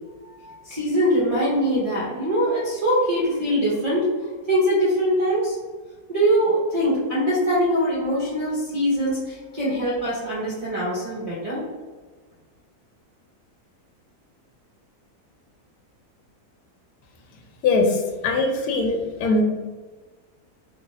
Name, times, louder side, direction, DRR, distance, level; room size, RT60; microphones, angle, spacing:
voice 1, 0.2-4.1 4.5-5.6 6.1-11.6, equal, 30° right, -9 dB, 0.7 m, -23 dB
voice 2, 17.6-19.4, left 3 dB, 80° left, 1 dB, 1.1 m, -21 dB
2.7 x 2.4 x 3.9 m, 1.4 s
omnidirectional pair, 1.6 m